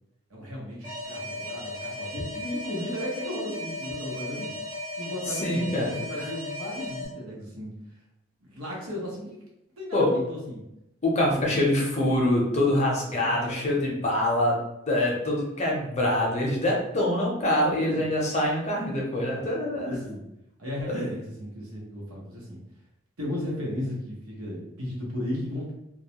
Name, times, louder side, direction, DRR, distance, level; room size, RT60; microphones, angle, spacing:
voice 1, 0.3-4.6 5.0-7.7 8.4-9.4 9.8-10.6 11.3-11.4 11.8-12.0 13.3-13.7 17.7-18.1 19.1-19.5 19.8-20.2 20.6-22.6 23.2-25.7, left 1 dB, 90° right, -4 dB, 0.8 m, -35 dB
Alarm, 0.8-7.1, left 2 dB, 20° right, 0.6 m, -36 dB
voice 2, 5.3-6.3 9.9-10.1 11.0-14.6 14.9-19.9 20.8-21.0, left 1 dB, 30° left, -2 dB, 0.5 m, -25 dB
2.3 x 2.0 x 2.8 m, 0.86 s
head